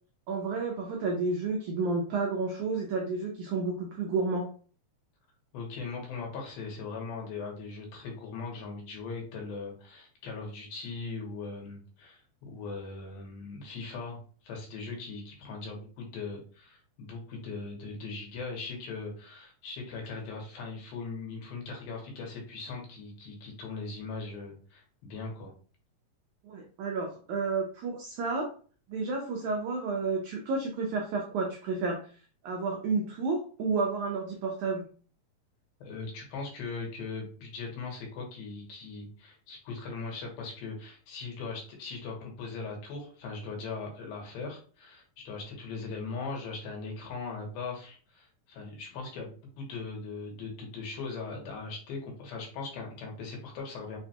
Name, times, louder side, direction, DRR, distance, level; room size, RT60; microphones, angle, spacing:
voice 1, 0.3-4.5 26.4-28.5 28.9-32.0 32.4-34.8, right 3 dB, 85° right, 1 dB, 1.7 m, -31 dB
voice 2, 5.5-14.2 14.4-25.5 35.8-49.3 49.6-54.0, left 4 dB, 80° left, 0 dB, 2.8 m, -39 dB
5.8 x 2.2 x 2.7 m, 0.42 s
omnidirectional pair, 4.2 m